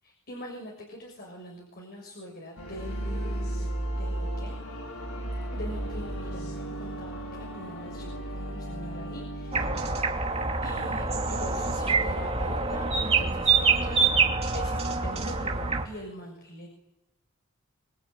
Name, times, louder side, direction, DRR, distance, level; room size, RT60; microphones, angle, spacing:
voice 1, 0.0-4.6 5.5-9.9 10.6-14.1 14.5-16.7, left 1 dB, 50° left, 1 dB, 6.5 m, -42 dB
sound 1, 2.6-10.0, right 1 dB, 90° left, 5.3 m, -34 dB
sound 2, 9.5-15.8, right 4 dB, 30° right, 2.8 m, -26 dB
25.5 x 23.5 x 8.9 m, 0.92 s
head